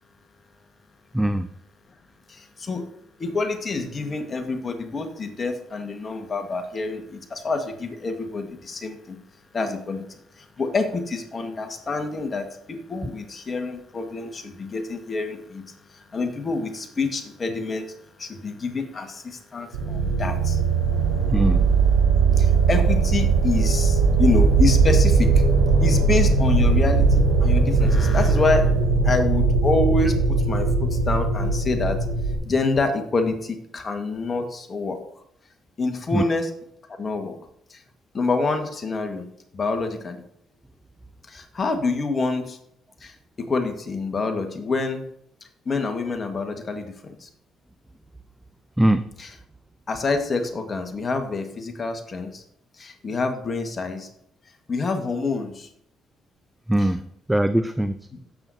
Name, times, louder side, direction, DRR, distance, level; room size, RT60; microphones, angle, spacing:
voice 1, 1.1-1.5 21.3-21.6 36.1-36.2 48.8-49.1 56.7-57.0 57.3-58.0, right 1 dB, 10° right, 11 dB, 0.5 m, -21 dB
voice 2, 2.3-2.9 3.2-9.2 9.5-17.9 18.2-20.6 22.3-25.4 25.8-28.8 29.0-32.0 32.4-35.0 35.8-36.5 37.0-37.3 37.7-37.8 38.1-39.2 39.5-40.2 41.3-42.6 43.0-45.0 45.6-47.3 49.2-49.3 49.9-52.4 52.8-54.1 54.7-55.7 56.8-56.9 58.1-58.2, left 3 dB, 40° left, 6 dB, 1.7 m, -27 dB
sound 1, 19.7-32.3, right 4 dB, 85° right, 2.4 m, -19 dB
16.0 x 7.7 x 2.8 m, 0.74 s
hypercardioid pair, 50°, 0 cm